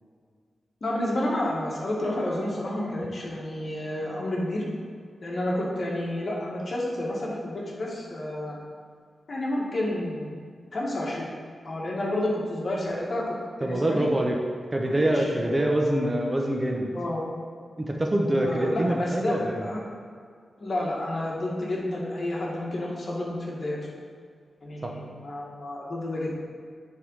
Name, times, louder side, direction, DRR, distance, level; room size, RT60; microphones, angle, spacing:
voice 1, 0.8-4.6 5.2-8.6 9.3-10.3 10.7-11.3 11.6-14.1 15.1-16.1 16.9-17.2 18.4-19.8 20.6-23.8 24.6-26.4, left 1 dB, 50° left, -4 dB, 2.0 m, -30 dB
voice 2, 13.6-14.4 14.7-16.9 17.8-19.6 24.8-24.9, right 1 dB, 25° right, 1 dB, 1.0 m, -25 dB
9.6 x 3.9 x 4.8 m, 2.1 s
cardioid pair, 70°, 0 cm